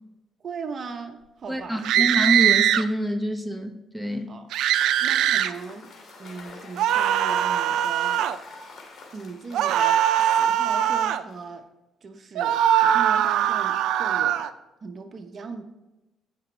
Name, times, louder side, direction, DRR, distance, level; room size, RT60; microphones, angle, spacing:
voice 1, 0.4-2.1 4.3-4.4 5.0-5.9 6.2-8.3 9.1-11.6 12.0-14.4 14.8-15.6, right 4 dB, 50° right, 6 dB, 0.9 m, -38 dB
voice 2, 1.5-4.3, right 1 dB, 5° left, 5 dB, 1.3 m, -26 dB
sound 1, 1.8-2.8 4.5-5.5 6.8-8.4 9.5-11.2 12.4-14.5, right 10 dB, 85° right, 0.5 m, -21 dB
Cheering / Applause / Crowd, 4.5-11.6, left 3 dB, 65° left, 2.8 m, -47 dB
16.0 x 6.1 x 3.4 m, 0.99 s
cardioid pair, 90°, 0 cm